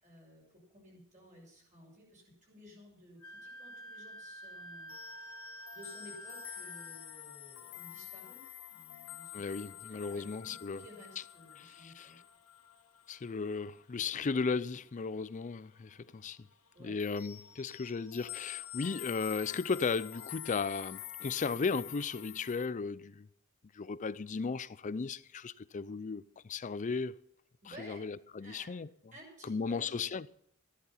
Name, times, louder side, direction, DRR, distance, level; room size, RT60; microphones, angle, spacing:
voice 1, 0.0-4.9 5.7-9.4 9.8-12.2 16.7-16.9 27.6-28.0 28.4-28.7 29.1-30.1, equal, 35° right, 6.0 m, -55 dB
Wind instrument woodwind instrument, 3.2-7.1, right 1 dB, 85° left, 1.3 m, -48 dB
sound 1, 4.9-15.3 15.6-15.9 16.2-22.7, left 13 dB, 65° left, 1.2 m, -48 dB
voice 2, 9.3-10.8 11.6-12.1 13.1-16.4 16.8-23.3 23.7-27.1 27.8-28.9 29.4-30.3, left 4 dB, 35° left, 0.4 m, -36 dB
14.0 x 10.5 x 5.7 m
head